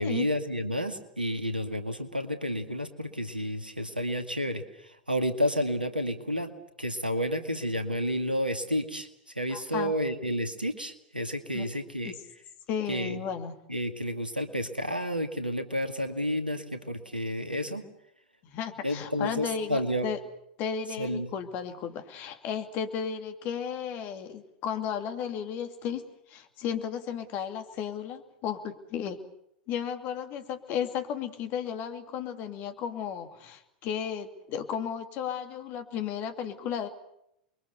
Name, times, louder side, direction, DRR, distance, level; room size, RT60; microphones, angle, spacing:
voice 1, 0.0-6.5 6.8-9.1 9.4-12.2 12.9-13.2 13.7-17.8 18.8-20.1 21.0-21.3, equal, 90° right, 8 dB, 2.1 m, -30 dB
voice 2, 9.5-9.9 11.5-11.7 12.0-12.2 12.7-13.6 18.4-20.2 20.6-29.2 29.7-36.9, left 8 dB, 40° left, 7 dB, 2.7 m, -34 dB
28.5 x 22.5 x 6.9 m, 0.78 s
figure-of-eight pair, 85°, 5 cm